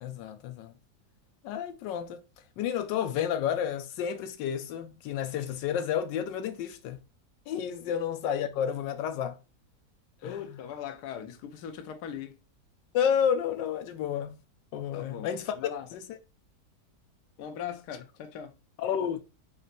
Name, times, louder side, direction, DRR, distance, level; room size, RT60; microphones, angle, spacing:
voice 1, 0.0-0.7 1.4-2.2 2.6-7.0 7.5-9.4 10.2-10.4 12.9-14.4 14.7-15.5 15.9-16.0 18.8-19.2, left 8 dB, 90° left, 1.3 m, -30 dB
voice 2, 10.2-12.4 14.9-15.9 17.4-18.6, left 9 dB, 70° left, 1.2 m, -40 dB
4.3 x 3.9 x 2.5 m
omnidirectional pair, 1.9 m